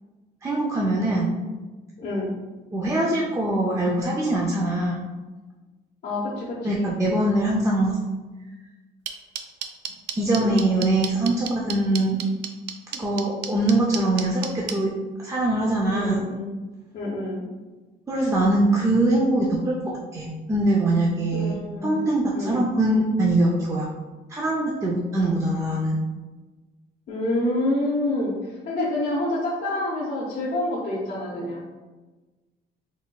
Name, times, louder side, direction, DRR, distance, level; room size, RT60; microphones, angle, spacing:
voice 1, 0.4-1.3 2.7-5.0 6.6-7.9 10.2-12.2 12.9-14.9 15.2-16.2 18.1-23.9 24.3-26.0, right 1 dB, 15° right, -4 dB, 0.5 m, -23 dB
voice 2, 2.0-2.3 6.0-7.0 10.4-10.6 15.9-16.5 16.9-17.4 21.3-22.0 22.3-22.6 25.2-25.3 27.1-28.3 28.7-31.6, left 1 dB, 50° left, -6 dB, 0.8 m, -27 dB
sound 1, 9.1-14.7, right 9 dB, 80° right, 0.4 m, -30 dB
4.0 x 3.4 x 2.3 m, 1.2 s
cardioid pair, 130°, 18 cm